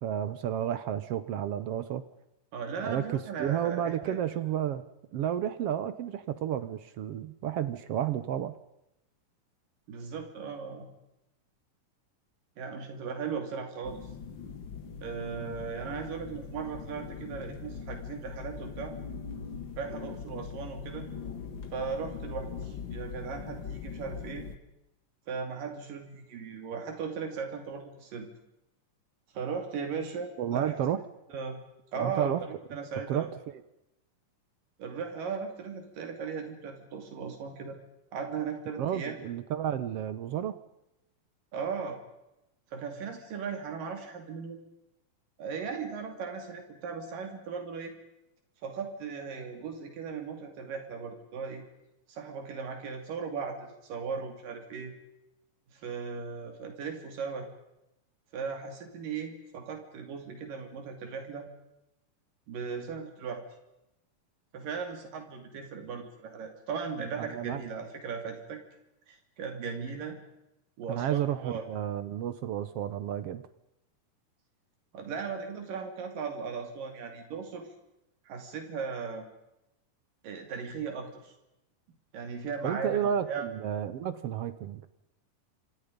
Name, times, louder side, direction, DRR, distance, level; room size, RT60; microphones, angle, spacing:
voice 1, 0.0-2.0 2.8-4.8 5.1-8.5 30.4-31.0 31.9-32.4 33.1-33.3 38.8-40.6 67.2-67.7 70.9-73.4 82.6-84.8, right 10 dB, 65° right, 13 dB, 1.5 m, -31 dB
voice 2, 2.5-4.3 9.9-10.9 12.6-14.0 15.0-18.9 19.8-21.1 21.7-24.5 25.3-28.3 29.3-30.7 31.3-31.6 31.9-33.3 34.8-37.8 38.1-39.2 41.5-42.0 42.7-44.6 45.4-47.9 48.6-51.6 52.1-54.9 55.7-57.5 58.3-61.5 62.5-63.4 64.5-68.6 69.1-70.2 70.8-71.6 74.9-77.7 78.3-79.2 80.2-81.3 82.1-83.5, right 5 dB, 80° right, 5 dB, 4.3 m, -37 dB
sound 1, 13.8-24.6, left 6 dB, 45° left, 1.9 m, -41 dB
29.0 x 26.5 x 5.3 m, 0.89 s
omnidirectional pair, 3.8 m